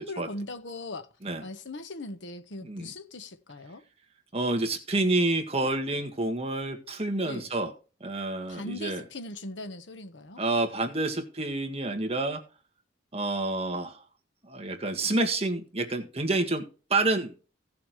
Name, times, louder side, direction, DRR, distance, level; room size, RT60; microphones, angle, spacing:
voice 1, 0.0-1.1 1.4-3.8 7.2-7.5 8.5-10.4, left 2 dB, 80° left, 1.3 m, -39 dB
voice 2, 4.3-7.7 8.0-9.0 10.4-12.4 13.1-14.0 14.4-17.3, right 2 dB, 35° right, 1.7 m, -28 dB
17.0 x 6.9 x 3.2 m
head